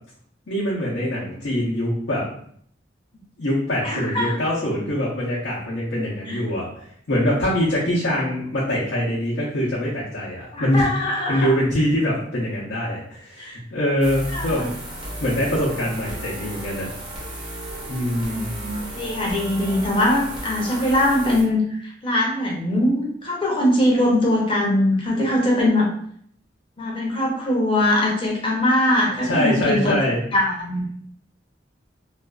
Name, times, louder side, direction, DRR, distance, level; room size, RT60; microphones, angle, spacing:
voice 1, 0.5-2.3 3.4-10.9 11.3-14.7 15.2-16.9 17.9-18.5 29.2-30.2, equal, 80° left, -7 dB, 0.6 m, -23 dB
voice 2, 3.8-4.4 6.3-6.4 10.5-11.5 13.4-13.6 14.3-14.7 18.3-25.9 26.8-30.0 30.3-30.9, left 1 dB, 30° left, -2 dB, 0.6 m, -21 dB
sound 1, 14.0-21.4, right 1 dB, 30° right, 0.8 m, -34 dB
2.5 x 2.3 x 2.2 m, 0.63 s
head